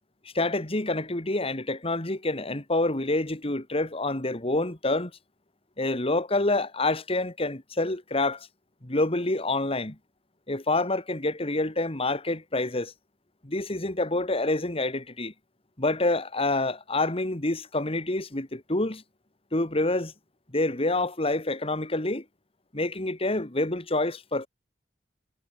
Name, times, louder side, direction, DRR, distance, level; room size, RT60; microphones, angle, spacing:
voice 1, 0.3-5.1 5.8-8.5 8.8-10.0 10.5-12.9 13.4-15.3 15.8-19.0 19.5-20.1 20.5-22.2 22.7-24.5, left 2 dB, 35° left, 2.3 m, -27 dB
head